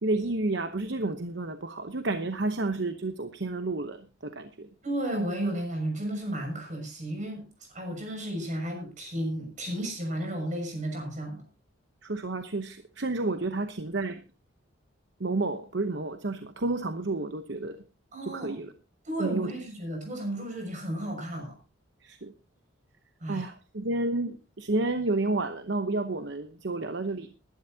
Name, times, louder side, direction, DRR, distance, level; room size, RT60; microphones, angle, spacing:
voice 1, 0.0-4.7 7.9-8.0 12.0-14.2 15.2-17.8 18.2-18.7 19.2-19.5 22.0-22.3 23.3-27.3, right 2 dB, 60° right, 8 dB, 0.9 m, -30 dB
voice 2, 4.8-7.4 7.7-11.4 18.1-18.5 19.0-21.5 23.2-23.5, right 1 dB, 40° right, 3 dB, 6.5 m, -33 dB
21.5 x 11.5 x 2.8 m, 0.30 s
head